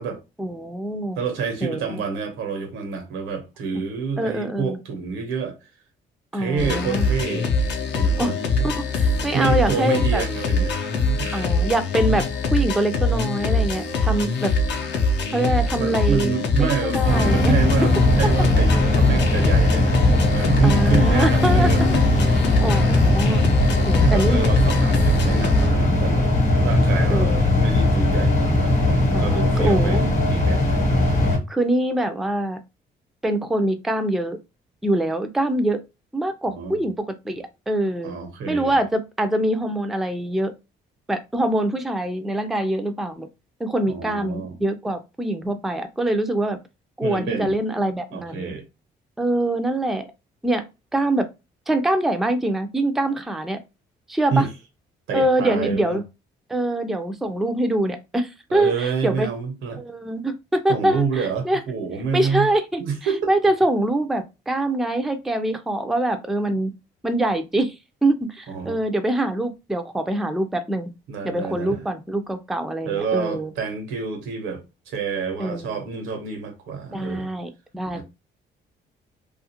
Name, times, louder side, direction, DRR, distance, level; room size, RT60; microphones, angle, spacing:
voice 1, 0.4-1.2 1.6-2.0 4.2-4.8 6.3-7.1 8.2-8.3 8.6-10.2 11.3-14.5 15.3-17.5 20.6-22.0 22.3-23.4 23.9-24.4 27.1-27.5 29.1-30.1 31.5-32.6 33.2-34.4 34.8-35.8 36.1-38.1 38.5-40.5 41.1-43.3 43.6-46.6 47.0-48.5 49.2-50.1 50.4-50.6 50.9-51.3 51.7-53.6 54.1-54.5 55.1-56.0 56.5-59.3 59.8-61.6 62.1-62.8 63.3-66.7 67.0-67.7 68.0-70.9 71.2-73.5 75.4-75.8 76.9-78.0, right 1 dB, ahead, 0.4 m, -24 dB
voice 2, 1.2-5.6 6.3-7.5 7.9-8.4 9.3-10.7 11.2-11.6 15.7-21.8 23.9-30.0 30.3-30.9 36.5-36.8 38.0-38.8 43.9-44.6 47.0-47.5 48.1-48.6 54.3-54.5 55.1-56.0 58.5-59.8 60.7-62.5 62.8-63.3 68.5-68.8 71.1-71.8 72.8-77.3 77.9-78.0, right 5 dB, 90° right, 0.9 m, -28 dB
sound 1, 6.6-25.7, left 2 dB, 60° left, 0.6 m, -23 dB
sound 2, 17.0-31.4, left 1 dB, 35° left, 0.9 m, -19 dB
2.4 x 2.4 x 2.8 m
cardioid pair, 90°, 20 cm